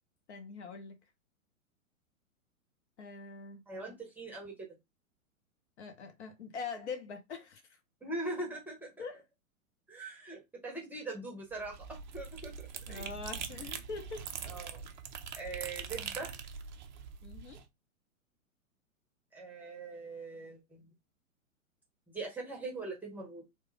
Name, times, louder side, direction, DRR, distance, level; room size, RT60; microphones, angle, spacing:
voice 1, 0.3-1.0 3.0-3.6 5.8-7.8 9.0-9.2 12.9-14.2 17.2-17.6, left 5 dB, 55° left, 0.8 m, -43 dB
voice 2, 3.7-4.7 8.0-8.9 9.9-13.1 14.5-14.8 15.4-16.3 19.3-20.9 22.1-23.4, right 2 dB, 5° right, 0.8 m, -41 dB
sound 1, 11.5-17.6, right 7 dB, 35° right, 0.4 m, -43 dB
3.2 x 2.2 x 3.2 m
figure-of-eight pair, 110°, 42 cm